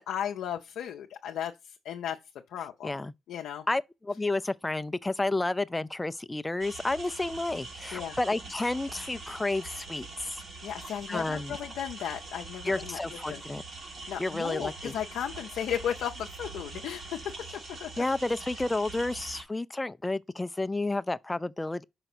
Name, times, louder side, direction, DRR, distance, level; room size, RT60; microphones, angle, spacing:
voice 1, 0.0-2.2 2.5-3.0 3.3-3.7 7.9-8.2 10.6-13.4 14.1-17.3 17.7-18.0, left 9 dB, 80° left, 0.6 m, -35 dB
voice 2, 2.8-3.1 3.7-10.4 11.1-11.6 12.6-13.6 14.2-14.9 18.0-21.8, left 2 dB, 15° left, 0.4 m, -31 dB
sound 1, 6.6-19.4, right 3 dB, 55° right, 2.8 m, -43 dB
5.6 x 4.0 x 6.0 m
supercardioid pair, 65°, 0 cm